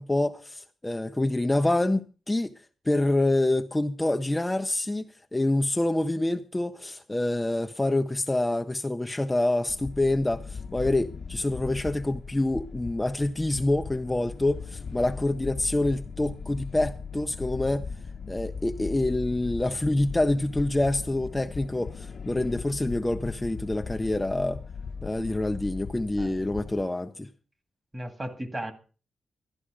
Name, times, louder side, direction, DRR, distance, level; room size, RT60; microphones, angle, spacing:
voice 1, 0.0-2.5 2.9-5.1 5.3-17.9 18.3-24.6 25.0-27.3, left 2 dB, 15° left, 0.6 m, -26 dB
sound 1, 9.7-26.8, left 5 dB, 60° left, 0.9 m, -38 dB
voice 2, 27.9-28.7, right 1 dB, 25° right, 2.1 m, -35 dB
13.0 x 11.5 x 4.9 m
cardioid pair, 95°, 0 cm